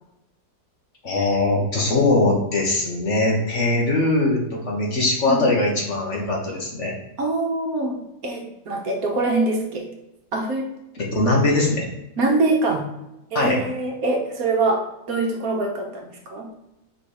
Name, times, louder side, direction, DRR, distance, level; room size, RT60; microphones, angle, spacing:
voice 1, 1.0-6.9 10.9-11.8 13.3-13.6, left 2 dB, 50° left, -2 dB, 1.6 m, -21 dB
voice 2, 7.2-9.9 10.3-10.7 12.2-12.8 13.3-16.5, right 2 dB, 65° right, 1 dB, 1.5 m, -24 dB
5.3 x 4.1 x 4.9 m, 0.89 s
omnidirectional pair, 1.7 m